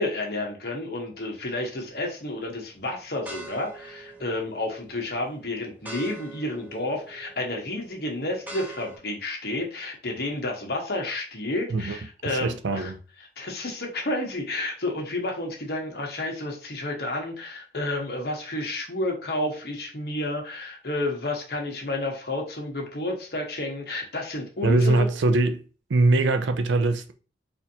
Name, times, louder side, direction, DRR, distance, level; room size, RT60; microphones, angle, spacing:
voice 1, 0.0-12.9 13.4-25.1, left 2 dB, 60° left, 1.1 m, -31 dB
sound 1, 1.6-2.1 2.6-9.0, right 2 dB, 10° right, 0.6 m, -44 dB
voice 2, 12.3-13.0 24.6-25.6 25.9-27.1, right 2 dB, 90° right, 0.5 m, -22 dB
4.1 x 2.6 x 2.7 m
head